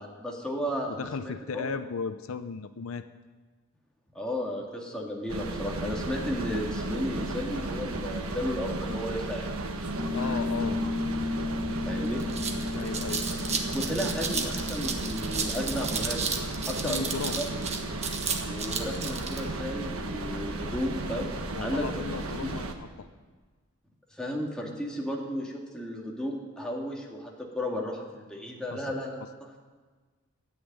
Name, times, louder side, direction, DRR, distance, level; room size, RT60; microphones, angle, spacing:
voice 1, 0.0-1.7 4.1-9.6 11.8-12.2 13.7-16.3 16.6-17.1 17.3-17.4 18.5-21.3 21.6-21.9 22.4-22.5 24.2-29.5, equal, 5° left, -2 dB, 2.2 m, -34 dB
voice 2, 0.9-3.1 10.1-10.8 12.7-13.3 16.7-17.4 21.5-23.1 28.7-28.8, left 5 dB, 70° left, 11 dB, 0.6 m, -36 dB
sound 1, 5.3-22.7, right 2 dB, 80° right, 1.3 m, -34 dB
sound 2, 10.0-16.9, left 2 dB, 15° right, 1.4 m, -35 dB
sound 3, 12.0-19.4, right 5 dB, 30° right, 1.3 m, -33 dB
13.5 x 8.8 x 8.8 m, 1.4 s
head